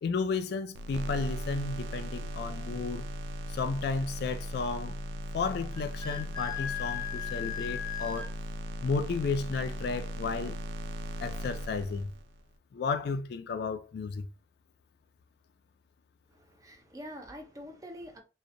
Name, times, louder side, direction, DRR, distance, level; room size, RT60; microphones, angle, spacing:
voice 1, 0.0-3.0 3.5-5.0 5.3-8.3 8.8-10.6 11.2-12.1 12.7-14.3, left 4 dB, 60° left, 0.3 m, -33 dB
sound 1, 0.7-12.4, equal, 85° right, 0.3 m, -38 dB
Wind instrument woodwind instrument, 5.7-8.3, left 11 dB, 10° left, 0.8 m, -37 dB
voice 2, 16.3-18.2, equal, 20° right, 0.5 m, -45 dB
2.8 x 2.1 x 2.5 m
head